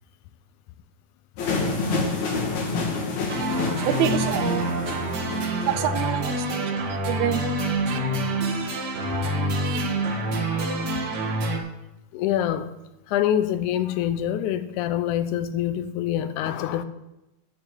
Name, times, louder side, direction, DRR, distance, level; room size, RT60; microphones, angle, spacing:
sound 1, 1.4-6.2, left 3 dB, 70° left, 3.0 m, -28 dB
sound 2, 3.3-11.6, right 1 dB, 50° right, 1.3 m, -27 dB
voice 1, 3.9-4.7 5.7-7.4 7.9-8.0 9.6-9.9, right 10 dB, 80° right, 1.9 m, -27 dB
voice 2, 12.1-12.7 13.1-16.8, left 11 dB, 85° left, 2.1 m, -25 dB
7.7 x 7.3 x 7.5 m
omnidirectional pair, 3.5 m